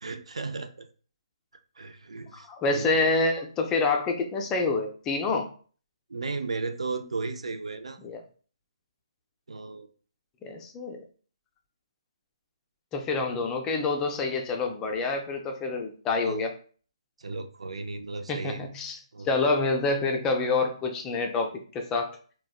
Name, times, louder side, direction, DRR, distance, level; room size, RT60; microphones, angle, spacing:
voice 1, 0.0-0.9 1.8-2.9 6.1-8.0 9.5-9.9 16.2-16.4 17.2-18.7 19.1-19.3, right 3 dB, 80° right, 8 dB, 0.4 m, -35 dB
voice 2, 2.3-5.5 8.0-8.2 10.4-11.0 12.9-16.5 18.3-19.0 19.2-22.2, left 3 dB, 15° left, 3 dB, 0.3 m, -27 dB
3.4 x 2.1 x 2.3 m, 0.42 s
hypercardioid pair, 150°, 3 cm